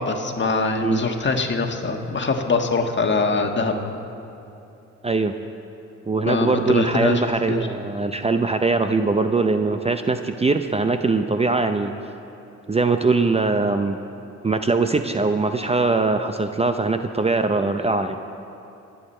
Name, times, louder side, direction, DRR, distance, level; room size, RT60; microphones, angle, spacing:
voice 1, 0.0-3.7 6.3-7.2 7.5-7.7, left 3 dB, 40° left, 3 dB, 1.6 m, -23 dB
voice 2, 6.1-11.9 12.7-14.0 14.4-18.2, right 3 dB, 20° right, 7 dB, 0.6 m, -21 dB
26.0 x 8.7 x 4.4 m, 2.8 s
cardioid pair, 70°, 29 cm